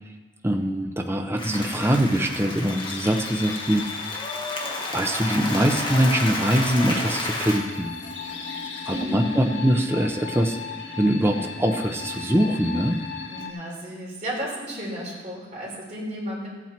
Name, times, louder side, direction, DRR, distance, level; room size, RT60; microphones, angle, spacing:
voice 1, 0.4-3.8 4.9-7.9 8.9-10.6 11.0-13.0, equal, 15° right, 4 dB, 0.7 m, -23 dB
Applause, 1.4-7.6, left 2 dB, 30° left, 1.5 m, -31 dB
sound 1, 2.7-13.5, left 5 dB, 70° left, 1.6 m, -36 dB
voice 2, 8.9-9.6 13.3-16.5, equal, 40° right, -4 dB, 3.7 m, -32 dB
14.5 x 8.6 x 4.5 m, 1.3 s
head